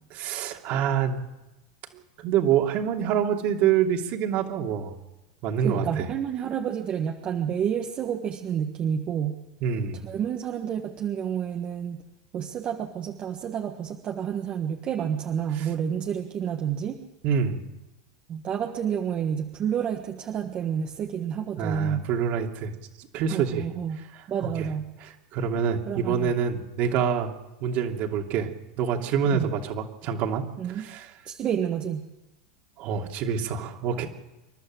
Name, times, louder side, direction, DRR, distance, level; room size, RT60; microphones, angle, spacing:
voice 1, 0.1-1.2 2.2-4.9 5.4-6.1 9.6-10.0 15.6-15.7 17.2-17.6 21.6-22.7 23.1-23.6 24.4-24.7 25.0-27.3 27.6-28.5 28.8-31.1 32.8-34.1, right 7 dB, 50° right, 2 dB, 2.8 m, -26 dB
voice 2, 5.6-9.4 10.0-12.0 12.3-17.0 18.3-22.1 23.3-24.0 24.3-24.9 25.9-26.3 29.3-29.5 30.6-30.9 31.3-32.1, right 8 dB, 35° right, 2 dB, 1.5 m, -29 dB
28.0 x 12.0 x 7.7 m, 1.0 s
supercardioid pair, 130°, 3 cm